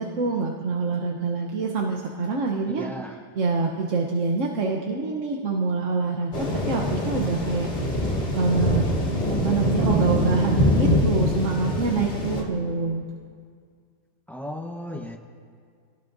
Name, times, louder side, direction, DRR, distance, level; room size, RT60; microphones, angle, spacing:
voice 1, 0.0-2.9 3.3-7.7 8.3-8.9 9.3-13.0, right 3 dB, 50° right, 0 dB, 1.1 m, -26 dB
voice 2, 2.7-3.1 14.3-15.2, equal, 5° left, 2 dB, 0.3 m, -35 dB
sound 1, 6.3-12.4, left 1 dB, 35° left, 2.3 m, -24 dB
25.5 x 18.0 x 2.6 m, 2.1 s
omnidirectional pair, 1.9 m